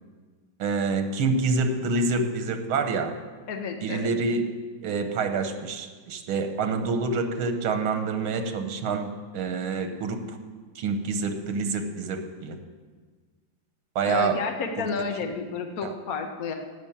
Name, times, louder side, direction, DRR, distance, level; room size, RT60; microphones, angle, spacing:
voice 1, 0.6-3.1 3.8-4.5 4.8-10.4 10.8-12.6 14.0-14.4 14.8-14.9 15.8-15.9, right 4 dB, 90° right, 7 dB, 1.9 m, -27 dB
voice 2, 3.5-4.1 14.0-16.5, left 5 dB, 50° left, 4 dB, 1.5 m, -31 dB
11.5 x 8.2 x 8.7 m, 1.5 s
omnidirectional pair, 2.2 m